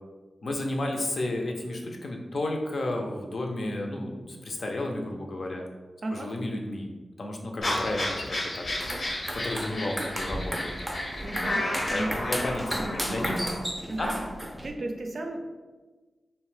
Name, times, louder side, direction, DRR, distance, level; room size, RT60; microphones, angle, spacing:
voice 1, 0.4-5.6 6.1-6.9 7.2-8.7 9.3-10.7 11.5-13.4 14.0-14.1, left 1 dB, 65° left, 1 dB, 0.4 m, -32 dB
voice 2, 6.0-6.3 11.2-11.7 11.9-12.2 12.8-13.5 13.9-14.2 14.6-15.4, right 2 dB, 65° right, 3 dB, 0.4 m, -35 dB
sound 1, 7.6-13.6, left 1 dB, 85° left, 0.8 m, -32 dB
sound 2, 8.7-14.7, equal, 5° right, 0.5 m, -34 dB
2.7 x 2.1 x 3.1 m, 1.3 s
cardioid pair, 50°, 0 cm